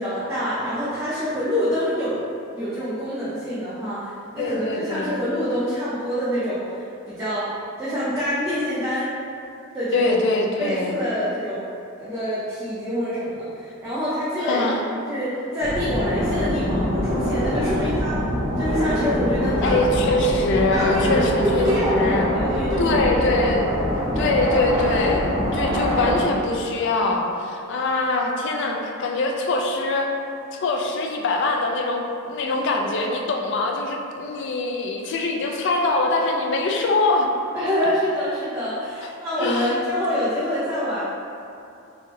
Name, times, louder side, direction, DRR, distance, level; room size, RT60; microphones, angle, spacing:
voice 1, 0.0-2.2 2.5-7.5 7.8-9.1 9.7-10.2 10.6-11.6 12.0-14.7 15.1-18.2 18.6-19.7 20.7-23.2 32.4-32.8 37.5-41.0, equal, 15° right, -12 dB, 0.6 m, -26 dB
voice 2, 4.4-5.1 9.9-11.0 14.4-14.8 19.6-22.3 22.8-23.7 24.1-30.1 30.5-37.3 39.0-39.1 39.4-39.8, left 2 dB, 60° left, 2 dB, 0.4 m, -23 dB
sound 1, 15.6-26.2, equal, 30° right, 0.9 m, -24 dB
3.5 x 2.7 x 3.2 m, 2.6 s
head